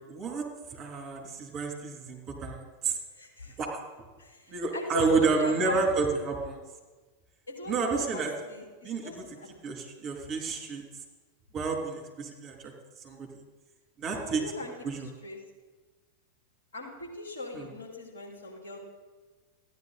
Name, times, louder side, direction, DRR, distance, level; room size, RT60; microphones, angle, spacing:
voice 1, 0.1-3.0 3.6-3.8 4.5-6.6 7.7-8.3 8.8-9.2 9.6-10.8 11.5-12.7 13.0-13.3 14.0-14.4 14.8-15.1 17.5-17.7, right 4 dB, 30° right, 0 dB, 3.1 m, -30 dB
voice 2, 3.1-3.6 4.2-5.8 7.5-9.5 14.1-15.4 16.7-18.8, left 2 dB, 70° left, -1 dB, 3.0 m, -38 dB
14.5 x 9.9 x 4.1 m, 1.3 s
figure-of-eight pair, 90°, 0 cm